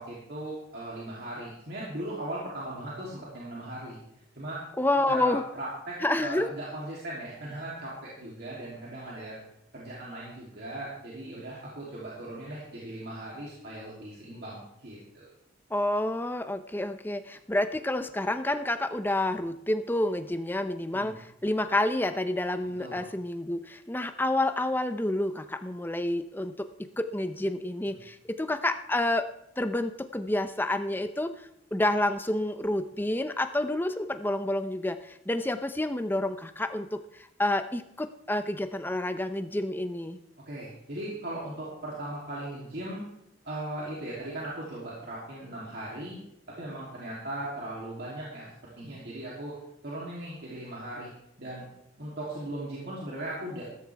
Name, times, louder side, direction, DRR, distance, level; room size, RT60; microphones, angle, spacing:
voice 1, 0.0-4.0 4.3-4.6 5.1-9.4 9.7-15.3 20.9-21.1 22.8-23.0 27.9-28.0 40.5-43.1 43.4-46.2 46.6-48.5 48.8-49.5 49.8-51.1 51.4-51.7 52.0-53.6, right 1 dB, 60° right, -6 dB, 3.1 m, -38 dB
voice 2, 4.8-5.4 6.0-6.5 15.7-26.7 27.0-29.3 29.6-40.2, left 1 dB, 10° left, 9 dB, 0.6 m, -29 dB
14.5 x 13.5 x 3.5 m, 0.80 s
head